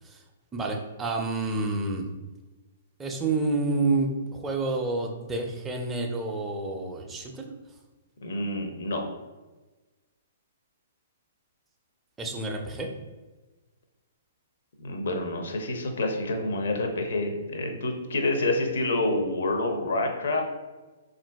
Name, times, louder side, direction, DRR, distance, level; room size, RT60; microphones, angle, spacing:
voice 1, 0.5-2.1 3.0-7.6 12.2-12.9, right 3 dB, 10° right, 1 dB, 0.4 m, -29 dB
voice 2, 8.2-9.0 14.8-20.4, left 2 dB, 60° left, 3 dB, 0.6 m, -28 dB
3.8 x 2.5 x 2.2 m, 1.2 s
figure-of-eight pair, 115°, 0 cm